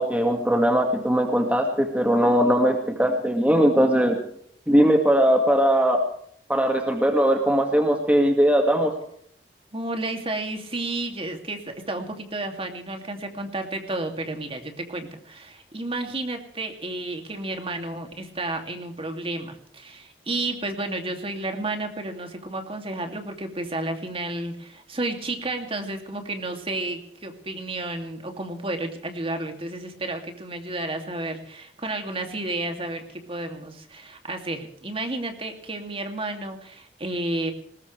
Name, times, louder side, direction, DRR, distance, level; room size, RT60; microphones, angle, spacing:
voice 1, 0.0-4.2 4.7-6.0 6.5-8.9, equal, 10° right, 3 dB, 2.0 m, -20 dB
voice 2, 9.7-37.5, right 2 dB, 35° right, 4 dB, 2.7 m, -31 dB
20.5 x 20.0 x 3.4 m, 0.65 s
head